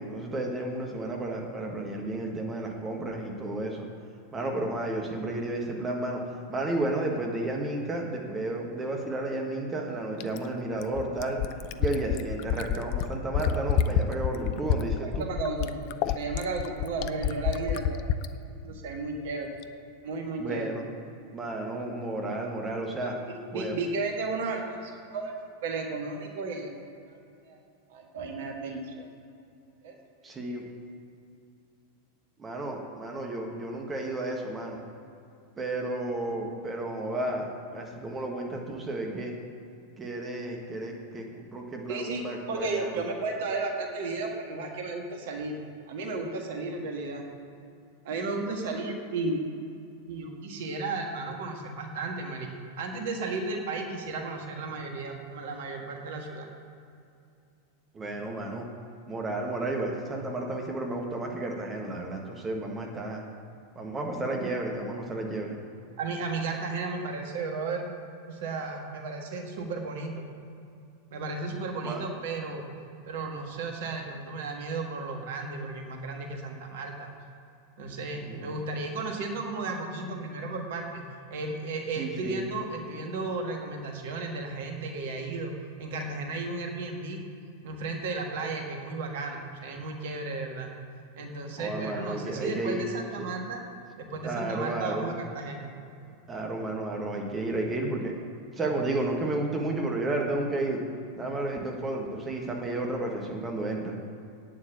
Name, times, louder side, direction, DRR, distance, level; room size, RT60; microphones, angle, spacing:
voice 1, 0.0-3.9 4.3-6.2 6.5-11.4 11.8-15.2 16.0-16.2 20.4-20.8 21.3-23.2 23.5-23.8 30.2-30.6 32.4-34.8 35.6-39.3 40.0-43.0 57.9-58.7 59.0-63.2 63.7-65.5 71.8-72.0 78.2-78.6 81.9-82.4 91.6-92.8 94.2-95.1 96.3-98.1 98.5-100.8 101.2-103.9, right 2 dB, 20° right, 1 dB, 1.6 m, -32 dB
Fill (with liquid), 10.2-18.3 19.6-19.7, left 9 dB, 45° left, 0.5 m, -28 dB
voice 2, 15.0-18.0 18.6-19.5 20.0-20.7 23.0-25.4 25.6-26.7 27.5-27.6 27.9-29.1 29.8-29.9 41.9-45.6 45.9-47.2 48.0-49.5 50.1-52.5 52.8-56.5 66.0-67.9 68.3-70.2 71.1-72.6 73.0-77.1 77.8-81.0 81.3-85.5 85.8-87.2 87.6-90.7 91.2-93.6 94.0-95.7, right 3 dB, 55° right, 3 dB, 1.5 m, -34 dB
9.0 x 7.6 x 8.3 m, 2.5 s
figure-of-eight pair, 90°, 0 cm